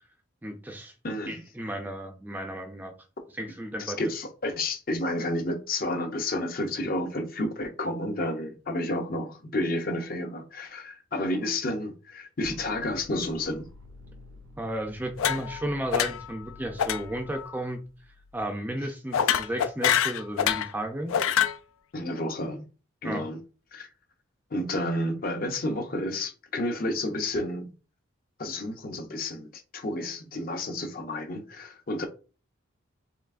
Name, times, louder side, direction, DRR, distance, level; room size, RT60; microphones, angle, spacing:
voice 1, 0.4-0.9 1.3-2.9 3.3-4.0 14.6-17.8 18.3-21.2 23.0-23.2, right 1 dB, 10° right, 0.4 m, -33 dB
voice 2, 1.0-1.4 3.8-13.7 21.9-22.6 23.0-23.4 23.7-23.9 24.5-27.7 28.4-32.1, left 1 dB, 45° left, 0.6 m, -31 dB
sound 1, 12.4-18.4, left 2 dB, 85° right, 0.7 m, -50 dB
sound 2, 15.2-15.6 15.9-16.3 16.8-17.0 17.3-17.6 19.1-20.7 21.1-21.6, left 9 dB, 85° left, 0.4 m, -25 dB
4.4 x 3.4 x 2.5 m
head